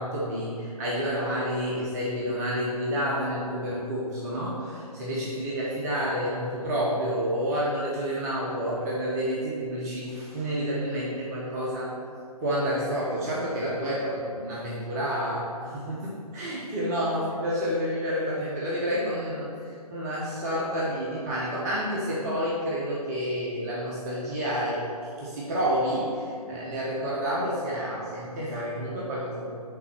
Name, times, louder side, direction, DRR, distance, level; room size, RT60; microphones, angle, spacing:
voice 1, 0.0-11.9 12.4-29.5, equal, 25° right, -6 dB, 1.0 m, -29 dB
5.7 x 4.1 x 5.9 m, 2.3 s
figure-of-eight pair, 135°, 20 cm